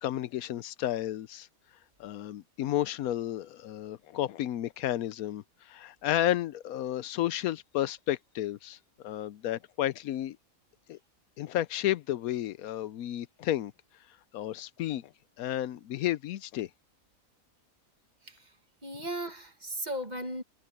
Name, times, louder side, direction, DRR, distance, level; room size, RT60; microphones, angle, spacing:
voice 1, 0.0-1.5 2.0-8.8 9.0-10.4 10.9-11.0 11.4-13.7 14.3-15.1 15.4-16.7, left 12 dB, 80° left, 1.1 m, -32 dB
voice 2, 18.8-20.4, right 1 dB, 30° right, 1.6 m, -36 dB
omnidirectional pair, 1.5 m